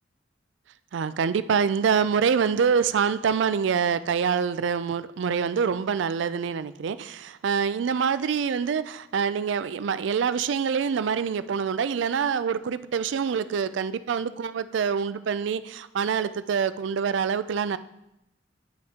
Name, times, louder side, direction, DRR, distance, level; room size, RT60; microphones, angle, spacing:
voice 1, 0.9-17.8, right 6 dB, 70° right, 0.4 m, -25 dB
10.0 x 6.3 x 2.9 m
head